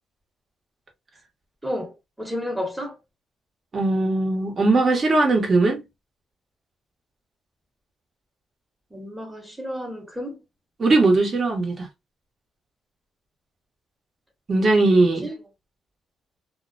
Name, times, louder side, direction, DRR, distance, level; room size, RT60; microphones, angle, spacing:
voice 1, 1.6-3.0 8.9-10.4 15.0-15.3, equal, 5° right, 1.0 m, -32 dB
voice 2, 3.7-5.8 10.8-11.9 14.5-15.3, right 2 dB, 40° right, 1.0 m, -19 dB
2.4 x 2.0 x 2.5 m
cardioid pair, 90°, 0 cm